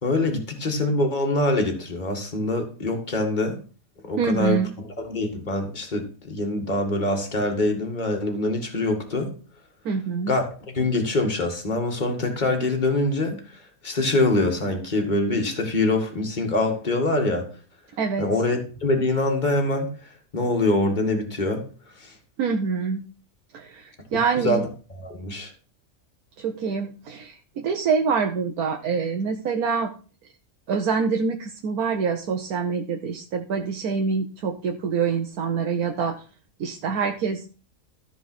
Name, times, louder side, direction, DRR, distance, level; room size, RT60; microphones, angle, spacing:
voice 1, 0.0-3.6 4.0-4.6 5.0-9.3 10.3-17.5 18.2-19.9 20.3-21.7 22.0-22.2 24.4-24.6 25.0-25.5, left 2 dB, 30° left, 3 dB, 2.1 m, -24 dB
voice 2, 4.2-4.7 9.8-10.4 18.0-18.3 22.4-23.0 23.5-24.6 26.4-29.9 30.7-36.2 36.6-37.5, right 5 dB, 90° right, 4 dB, 1.5 m, -25 dB
13.5 x 4.8 x 6.1 m, 0.37 s
omnidirectional pair, 1.5 m